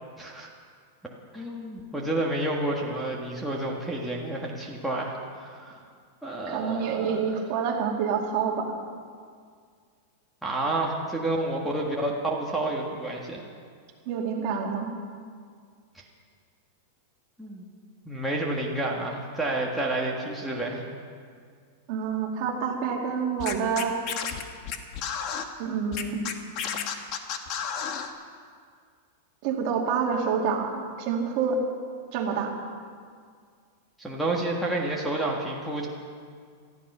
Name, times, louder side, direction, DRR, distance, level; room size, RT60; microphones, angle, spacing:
voice 1, 0.2-0.5 1.3-5.8 6.2-7.4 10.4-13.4 15.9-16.0 17.4-17.6 18.0-20.8 34.0-35.9, right 2 dB, ahead, -4 dB, 1.6 m, -30 dB
voice 2, 6.5-8.7 14.1-14.9 21.9-24.0 25.6-26.2 29.4-31.6 32.1-32.5, right 6 dB, 45° right, 1 dB, 2.4 m, -27 dB
Scratching (performance technique), 23.4-25.4 25.9-28.1, left 8 dB, 40° left, 1.3 m, -32 dB
19.0 x 13.5 x 5.5 m, 2.1 s
supercardioid pair, 155°, 0 cm